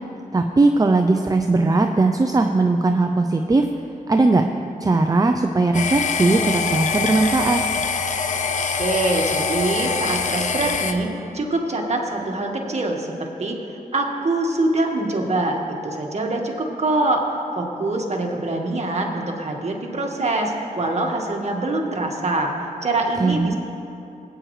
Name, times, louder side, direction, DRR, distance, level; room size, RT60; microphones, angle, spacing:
voice 1, 0.3-3.7 4.1-4.5 4.8-7.6 23.2-23.5, right 3 dB, 25° right, 4 dB, 0.6 m, -19 dB
sound 1, 5.7-10.9, left 5 dB, 55° left, 0.8 m, -24 dB
voice 2, 8.8-11.1 11.3-13.6 13.9-17.2 17.6-22.5 22.8-23.6, right 2 dB, 50° right, 1 dB, 1.6 m, -24 dB
19.0 x 9.2 x 3.2 m, 2.8 s
cardioid pair, 65°, 15 cm